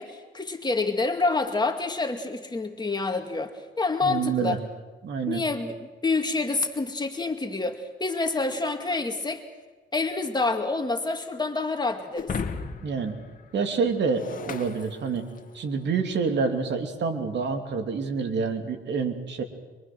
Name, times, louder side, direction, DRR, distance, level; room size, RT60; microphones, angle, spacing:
voice 1, 0.0-4.6 5.3-9.4 9.9-12.3, left 3 dB, 20° left, 4 dB, 2.3 m, -27 dB
voice 2, 4.0-4.6 5.0-5.4 12.8-13.2 13.5-15.3 15.5-19.4, right 5 dB, 60° right, 5 dB, 2.9 m, -27 dB
Shatter, 12.1-15.6, left 5 dB, 45° left, 2.0 m, -36 dB
24.5 x 23.5 x 6.2 m, 1.3 s
cardioid pair, 90°, 20 cm